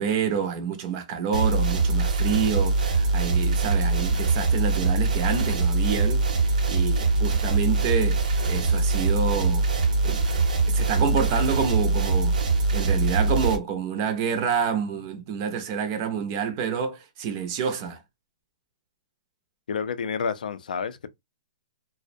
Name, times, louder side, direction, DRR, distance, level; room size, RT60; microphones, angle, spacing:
voice 1, 0.0-10.2 10.7-12.4 12.7-18.0, right 7 dB, 30° right, 0.4 m, -28 dB
sound 1, 1.3-13.6, right 3 dB, 70° right, 0.7 m, -23 dB
voice 2, 19.7-21.1, left 6 dB, 85° left, 0.4 m, -29 dB
2.4 x 2.0 x 2.5 m
hypercardioid pair, 165°, 4 cm